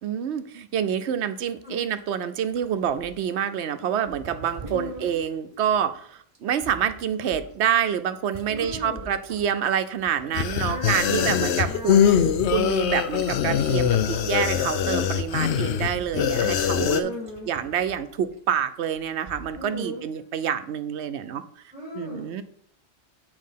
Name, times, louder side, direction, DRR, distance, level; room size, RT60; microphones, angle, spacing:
voice 1, 0.0-12.2 12.5-17.1 17.5-21.4 21.9-22.4, right 9 dB, 75° right, 11 dB, 0.9 m, -27 dB
sound 1, 1.5-1.6 1.9-2.0 2.5-3.5 4.1-5.8 6.3-9.7 10.0-14.8 15.1-15.4 15.6-18.3 19.0-19.1 19.3-19.7 20.2-20.3, right 4 dB, 30° right, 0.9 m, -42 dB
voice 2, 4.7-5.1 8.5-9.0 10.6-12.4 17.0-17.5 19.5-20.0 21.7-22.4, left 1 dB, 5° right, -4 dB, 2.2 m, -37 dB
sound 2, 10.3-17.0, left 8 dB, 75° left, 0.9 m, -23 dB
7.3 x 4.9 x 5.6 m, 0.63 s
omnidirectional pair, 1.2 m